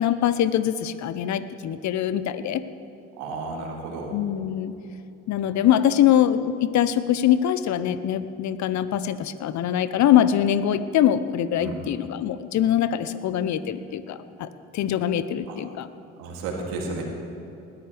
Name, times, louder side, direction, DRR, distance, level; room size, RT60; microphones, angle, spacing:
voice 1, 0.0-2.6 4.1-4.7 5.3-14.5 14.7-15.9, left 10 dB, 55° left, 14 dB, 0.9 m, -23 dB
voice 2, 3.2-4.2 11.6-11.8 15.5-15.6 16.2-17.0, right 3 dB, 75° right, -1 dB, 3.0 m, -32 dB
20.0 x 14.0 x 3.5 m, 2.8 s
hypercardioid pair, 60°, 35 cm